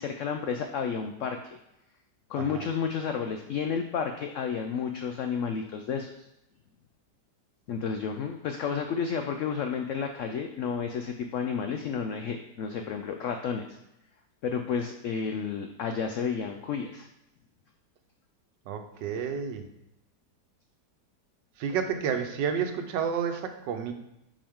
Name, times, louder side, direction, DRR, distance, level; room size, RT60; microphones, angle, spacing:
voice 1, 0.0-1.4 2.3-6.1 7.7-13.7 14.4-17.1 21.7-21.8, left 6 dB, 90° left, 5 dB, 0.6 m, -31 dB
voice 2, 18.7-19.6 21.6-23.9, right 7 dB, 90° right, 6 dB, 1.4 m, -30 dB
7.3 x 4.7 x 3.6 m, 0.86 s
omnidirectional pair, 1.9 m